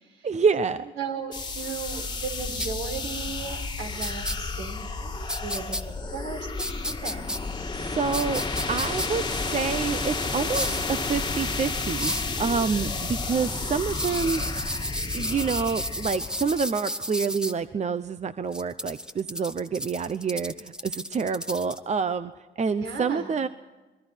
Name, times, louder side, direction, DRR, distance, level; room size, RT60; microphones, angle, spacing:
voice 1, 0.2-0.9 7.7-9.2 9.5-12.1 12.4-14.4 15.1-22.3 22.6-23.5, right 5 dB, 35° right, 12 dB, 0.8 m, -27 dB
voice 2, 1.0-7.4 22.7-23.3, right 5 dB, 75° right, 3 dB, 4.5 m, -36 dB
sound 1, 1.3-16.6, left 3 dB, 20° left, 1.7 m, -31 dB
sound 2, 2.6-2.7 4.0-4.4 5.3-5.8 6.6-7.4 8.1-9.1 10.5-10.8 12.0-12.3 13.9-17.5 18.5-21.8, equal, 5° right, 1.2 m, -32 dB
27.0 x 21.5 x 4.6 m, 1.2 s
cardioid pair, 90°, 20 cm